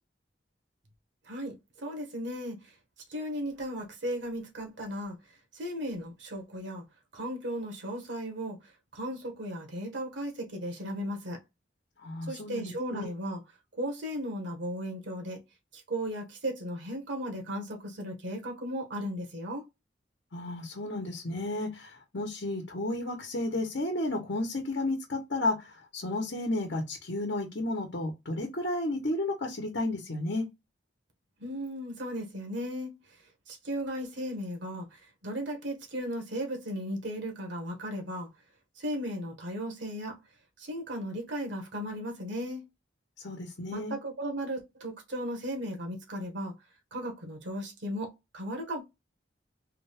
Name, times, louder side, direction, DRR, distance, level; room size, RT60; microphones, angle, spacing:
voice 1, 1.2-2.7 3.1-5.2 5.5-6.8 7.1-8.6 8.9-11.4 12.3-13.4 13.7-15.4 15.7-19.6 31.4-32.9 33.5-38.3 38.8-40.2 40.6-42.6 43.7-46.5 46.9-48.8, equal, 85° right, 1.3 m, -36 dB
voice 2, 12.0-13.1 20.3-30.5 43.2-43.9, left 2 dB, 70° left, 1.1 m, -32 dB
3.7 x 2.4 x 3.4 m
head